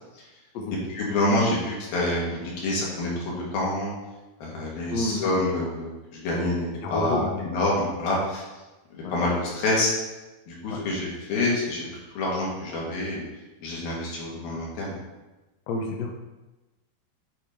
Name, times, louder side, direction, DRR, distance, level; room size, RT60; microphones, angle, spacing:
voice 1, 1.0-3.9 4.4-8.4 8.9-9.9 10.5-13.2 13.6-15.0, left 2 dB, 65° left, -5 dB, 3.8 m, -27 dB
voice 2, 4.9-5.2 6.8-7.4 9.0-9.1 10.7-10.8 15.7-16.1, left 2 dB, 85° left, 1 dB, 1.4 m, -29 dB
8.6 x 4.6 x 5.3 m, 1.1 s
omnidirectional pair, 4.7 m